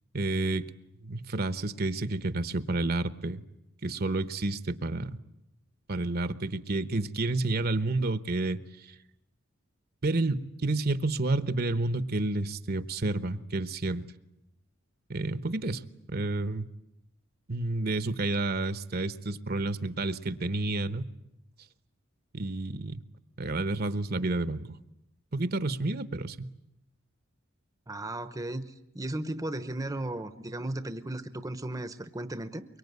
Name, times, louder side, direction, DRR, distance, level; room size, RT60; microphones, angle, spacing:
voice 1, 0.1-0.7 1.0-3.4 3.8-5.2 5.9-8.6 10.0-14.0 15.1-15.8 16.1-16.7 17.5-21.1 22.3-23.0 23.4-24.8 25.3-26.5, right 2 dB, 50° right, 12 dB, 1.0 m, -30 dB
voice 2, 27.9-32.7, right 1 dB, 15° right, 11 dB, 0.9 m, -35 dB
24.0 x 23.0 x 9.5 m, 0.87 s
head